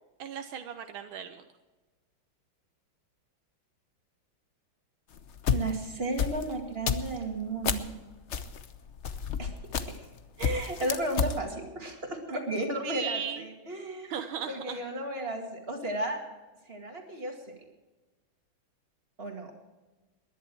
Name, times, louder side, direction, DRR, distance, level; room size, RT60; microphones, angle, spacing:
voice 1, 0.2-1.5 12.8-13.5 14.0-14.8, right 7 dB, 80° right, 8 dB, 1.7 m, -36 dB
sound 1, 5.1-7.9 8.3-10.1 10.4-11.4, left 7 dB, 55° left, 0.7 m, -30 dB
voice 2, 5.5-7.9 9.4-9.9 10.4-14.1 14.5-16.2 16.7-17.5 19.2-19.5, right 1 dB, 30° right, 2 dB, 2.3 m, -34 dB
20.5 x 11.0 x 4.6 m, 1.2 s
omnidirectional pair, 2.2 m